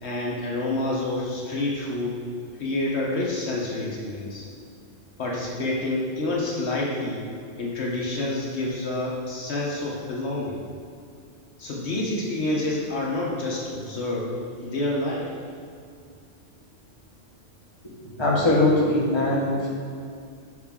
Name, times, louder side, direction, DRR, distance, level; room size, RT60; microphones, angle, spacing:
voice 1, 0.0-2.2 2.6-4.5 5.2-7.2 7.6-10.6 11.6-14.3 14.6-15.4, left 2 dB, 65° left, -4 dB, 1.2 m, -28 dB
voice 2, 18.2-19.7, left 2 dB, 25° left, -5 dB, 1.2 m, -21 dB
6.3 x 5.7 x 3.6 m, 2.3 s
omnidirectional pair, 1.2 m